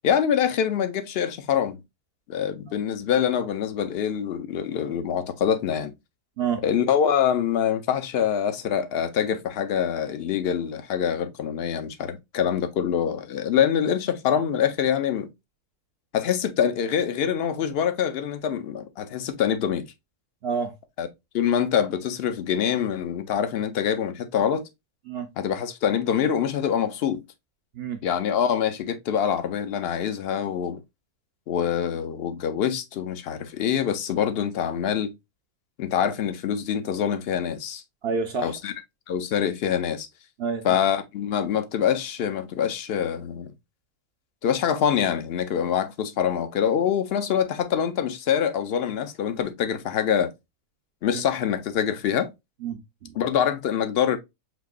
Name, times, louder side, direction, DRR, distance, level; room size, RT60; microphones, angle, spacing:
voice 1, 0.0-1.8 2.3-5.9 6.6-15.3 16.1-19.9 21.0-21.1 21.3-24.6 25.4-27.2 28.0-30.8 31.5-35.1 35.8-37.8 38.4-38.7 39.1-40.1 40.6-43.5 44.4-50.3 51.0-52.3 53.2-54.2, left 8 dB, 55° left, 0.7 m, -25 dB
voice 2, 20.4-20.8 25.1-25.3 27.7-28.0 38.0-38.6 40.4-40.7 51.1-51.2 52.6-53.2, right 6 dB, 60° right, 0.7 m, -29 dB
6.0 x 2.8 x 2.4 m
omnidirectional pair, 1.6 m